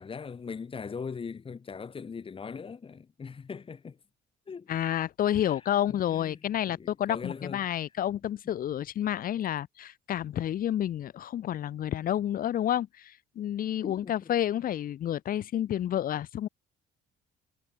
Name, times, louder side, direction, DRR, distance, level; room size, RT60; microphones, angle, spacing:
voice 1, 0.0-4.0 4.5-4.7 5.3-5.6 5.9-7.7 13.8-14.3, left 5 dB, 30° left, 7.9 m, -40 dB
voice 2, 4.7-16.5, left 11 dB, 55° left, 2.2 m, -30 dB
cardioid pair, 110°, 17 cm